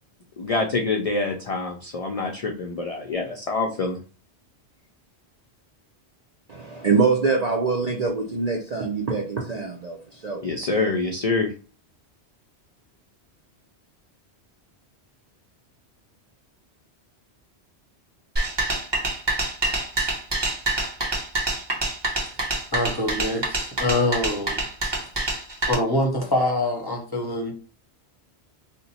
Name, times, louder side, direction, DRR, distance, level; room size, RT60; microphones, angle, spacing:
voice 1, 0.4-4.0 10.4-11.5, left 3 dB, 55° left, 0.4 m, -26 dB
voice 2, 6.5-10.5 10.8-11.0, right 4 dB, 55° right, 0.5 m, -24 dB
sound 1, 18.4-25.7, right 2 dB, 25° right, 0.9 m, -26 dB
voice 3, 22.7-24.7 25.7-27.5, left 1 dB, 25° left, 0.7 m, -24 dB
2.8 x 2.1 x 4.0 m
omnidirectional pair, 1.1 m